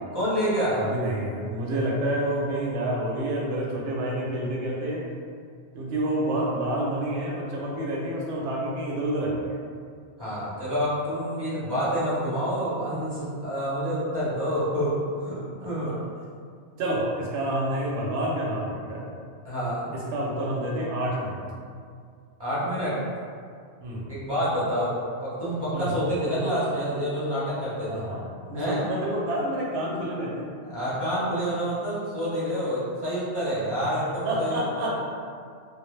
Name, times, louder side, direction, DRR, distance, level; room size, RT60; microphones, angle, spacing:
voice 1, 0.1-0.8 10.2-16.0 19.4-19.9 22.4-23.0 24.1-28.1 28.5-28.9 30.5-34.9, equal, 25° right, -11 dB, 0.7 m, -28 dB
voice 2, 0.7-5.0 5.7-9.6 16.8-19.1 19.9-21.4 23.8-24.1 25.7-25.9 27.9-30.5 34.2-34.9, right 1 dB, 75° right, -3 dB, 0.9 m, -28 dB
2.1 x 2.0 x 3.0 m, 2.2 s
omnidirectional pair, 1.2 m